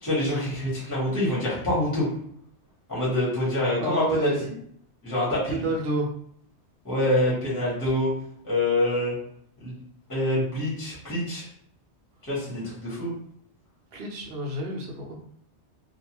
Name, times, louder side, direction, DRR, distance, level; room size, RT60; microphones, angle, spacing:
voice 1, 0.0-2.1 2.9-4.3 5.0-5.6 6.8-8.1 8.4-9.1 9.6-9.7 10.1-11.4 12.3-13.1, left 1 dB, 15° left, -7 dB, 1.0 m, -26 dB
voice 2, 3.8-4.5 5.3-6.1 13.9-15.2, right 1 dB, 60° right, 0 dB, 0.8 m, -29 dB
2.4 x 2.3 x 2.9 m, 0.66 s
omnidirectional pair, 1.2 m